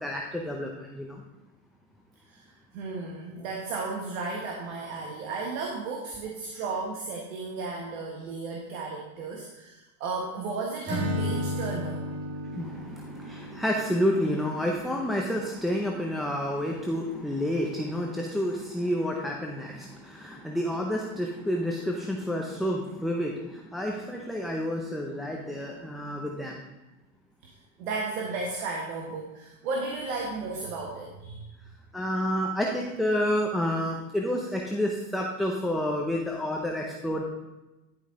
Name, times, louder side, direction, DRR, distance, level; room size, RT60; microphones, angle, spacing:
voice 1, 0.0-1.2 12.5-26.6 31.9-37.2, equal, ahead, -1 dB, 0.7 m, -29 dB
voice 2, 2.7-12.1 27.4-27.5 27.8-31.5, right 3 dB, 75° right, 0 dB, 1.4 m, -34 dB
Acoustic guitar / Strum, 10.9-14.8, left 1 dB, 25° right, 2.0 m, -33 dB
10.5 x 5.3 x 3.7 m, 1.0 s
supercardioid pair, 115°, 42 cm